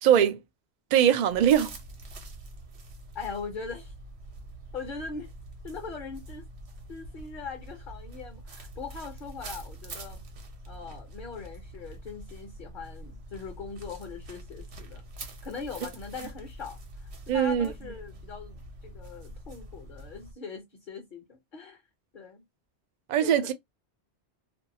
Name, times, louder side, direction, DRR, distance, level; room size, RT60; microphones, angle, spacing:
voice 1, 0.0-0.4 0.9-1.7 17.3-17.7 23.1-23.5, right 9 dB, 55° right, 0.5 m, -21 dB
sound 1, 1.3-20.3, right 1 dB, 75° right, 1.1 m, -45 dB
voice 2, 3.1-3.9 4.7-5.3 5.6-6.5 6.9-10.2 10.7-15.0 15.4-21.8 22.1-22.4 23.2-23.5, left 5 dB, 50° left, 0.9 m, -41 dB
2.6 x 2.3 x 2.7 m
omnidirectional pair, 1.1 m